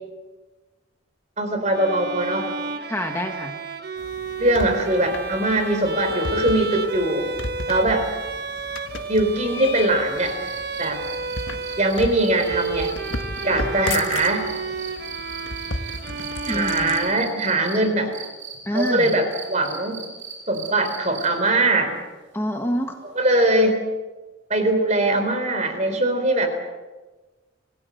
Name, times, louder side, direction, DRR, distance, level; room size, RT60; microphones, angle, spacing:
voice 1, 1.4-2.7 4.4-7.3 7.7-8.1 9.1-10.4 10.8-11.0 11.8-12.9 13.4-14.5 16.5-18.1 18.7-20.0 20.5-21.9 23.1-23.8 24.5-26.5, right 1 dB, 35° right, 7 dB, 3.9 m, -21 dB
Bowed string instrument, 1.7-17.7, right 3 dB, 50° right, 1.5 m, -31 dB
voice 2, 2.9-3.5 16.5-17.0 18.6-19.1 22.3-22.9, equal, 10° left, 3 dB, 1.6 m, -26 dB
snatching snake eggs, 4.0-17.2, left 2 dB, 70° left, 1.7 m, -35 dB
sound 1, 10.2-17.8 18.1-21.5 23.1-23.2, right 7 dB, 75° right, 7.1 m, -38 dB
27.0 x 18.0 x 8.0 m, 1.2 s
head